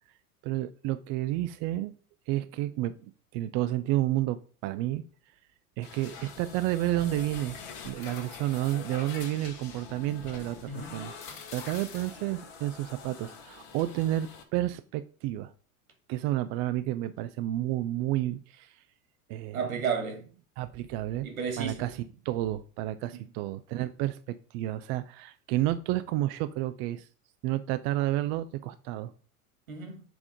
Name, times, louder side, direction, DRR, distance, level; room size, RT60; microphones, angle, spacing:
voice 1, 0.4-1.9 2.3-5.0 5.8-7.6 7.9-11.1 11.5-15.5 16.1-18.8 19.3-19.6 20.6-21.3 21.6-21.9 22.2-27.1 27.4-29.1, right 15 dB, 35° right, 0.5 m, -31 dB
sound 1, 5.8-14.4, left 6 dB, 50° left, 1.6 m, -45 dB
voice 2, 10.6-11.1 19.5-20.3 21.2-21.9 23.1-23.2 29.7-30.0, right 5 dB, 70° right, 2.3 m, -33 dB
7.6 x 3.5 x 4.9 m
figure-of-eight pair, 85°, 43 cm